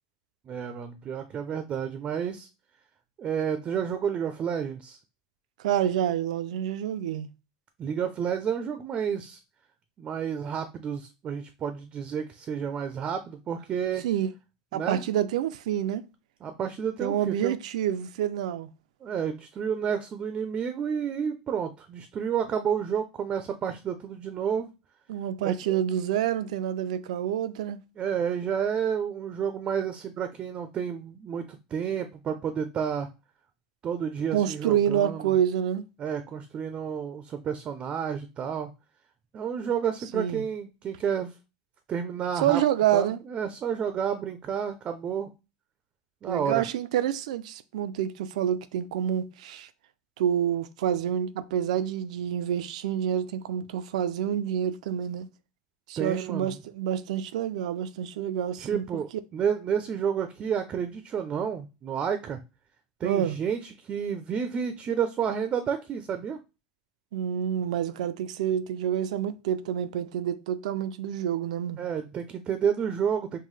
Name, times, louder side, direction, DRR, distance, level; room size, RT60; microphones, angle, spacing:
voice 1, 0.5-2.5 3.2-5.0 7.8-9.4 10.0-14.0 14.7-15.0 16.4-17.6 19.0-24.7 25.4-25.8 28.0-33.1 33.8-35.3 36.0-38.7 39.3-41.3 41.9-42.6 42.9-45.3 46.2-46.7 56.0-56.6 58.6-62.4 63.0-66.4 71.8-73.4, right 7 dB, 30° right, 0.5 m, -30 dB
voice 2, 5.6-7.3 14.0-14.3 14.7-16.0 17.0-18.7 25.1-27.8 34.3-35.9 40.1-40.4 42.4-43.2 46.3-49.7 50.2-55.3 55.9-58.9 63.0-63.4 67.1-71.8, right 10 dB, 85° right, 0.4 m, -28 dB
5.4 x 2.2 x 3.2 m
supercardioid pair, 135°, 4 cm